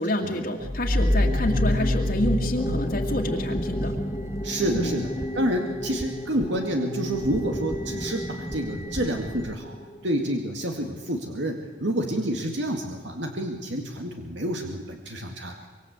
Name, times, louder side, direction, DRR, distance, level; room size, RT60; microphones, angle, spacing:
voice 1, 0.0-3.9 4.7-4.9, left 1 dB, 50° left, 0 dB, 2.2 m, -28 dB
sound 1, 0.6-10.0, left 1 dB, 20° left, 2.0 m, -28 dB
sound 2, 1.0-9.6, equal, 15° right, 1.1 m, -39 dB
voice 2, 4.4-5.1 5.3-9.8 10.0-15.5, right 1 dB, 70° right, 2 dB, 2.2 m, -28 dB
25.0 x 23.5 x 8.2 m, 1.2 s
head